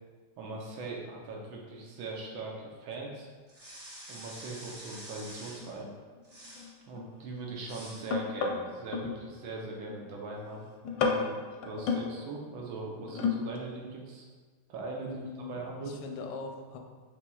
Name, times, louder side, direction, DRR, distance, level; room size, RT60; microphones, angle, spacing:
voice 1, 0.4-3.3 4.1-5.9 6.9-11.4 11.6-14.2 14.7-15.9, right 3 dB, 85° right, -1 dB, 1.6 m, -40 dB
sound 1, 3.5-5.7 6.2-6.7 7.6-8.1, right 1 dB, 55° right, 0.4 m, -47 dB
sound 2, 5.6-5.7 6.2-9.2 9.6-10.0 10.4-10.6 10.8-12.1 13.0-13.6 14.0-14.1, left 5 dB, 90° left, 1.4 m, -32 dB
voice 2, 15.0-16.8, left 4 dB, 75° left, 2 dB, 1.1 m, -41 dB
6.8 x 3.1 x 2.3 m, 1.4 s
omnidirectional pair, 2.2 m